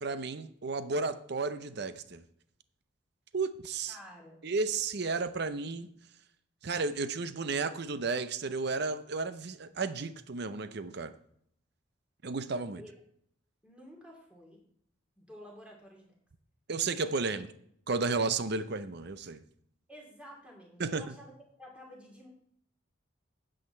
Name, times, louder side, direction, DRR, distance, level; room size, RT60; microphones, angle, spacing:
voice 1, 0.0-2.2 3.3-4.0 4.4-5.9 6.6-11.1 12.2-12.8 16.7-17.5 17.9-19.4 20.8-21.2, right 4 dB, 55° right, 12 dB, 0.6 m, -33 dB
voice 2, 3.9-4.4 12.7-12.9 13.6-14.6 15.2-16.1 17.3-17.4 19.9-22.3, equal, 5° right, -1 dB, 2.6 m, -51 dB
9.4 x 7.9 x 4.3 m, 0.68 s
head